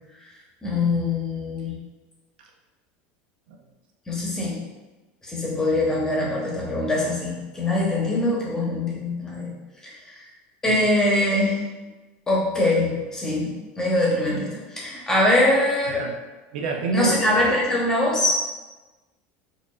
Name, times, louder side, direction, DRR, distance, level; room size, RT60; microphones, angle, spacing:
voice 1, 0.6-1.7 4.1-4.6 5.2-9.5 10.6-11.7 12.3-13.5 13.8-16.0 16.9-18.4, left 1 dB, 15° left, -5 dB, 0.9 m, -23 dB
voice 2, 16.5-17.1, right 4 dB, 90° right, 2 dB, 0.6 m, -28 dB
4.5 x 2.5 x 2.4 m, 1.2 s
supercardioid pair, 150°, 5 cm